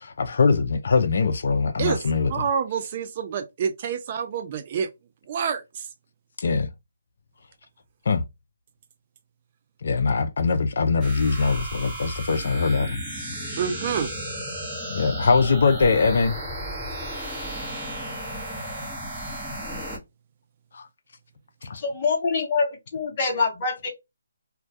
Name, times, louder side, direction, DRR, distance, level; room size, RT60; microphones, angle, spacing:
voice 1, 0.0-2.5 6.4-6.7 8.1-8.2 9.8-13.0 14.9-16.4 20.7-20.9 21.6-21.8, left 4 dB, 60° left, 0.4 m, -22 dB
voice 2, 2.3-4.9 5.3-5.9 13.6-14.1, right 7 dB, 35° right, 0.3 m, -27 dB
sound 1, 11.0-20.0, right 1 dB, 5° right, 0.8 m, -34 dB
voice 3, 21.8-23.9, left 4 dB, 30° left, 0.8 m, -25 dB
2.2 x 2.1 x 2.6 m
hypercardioid pair, 160°, 0 cm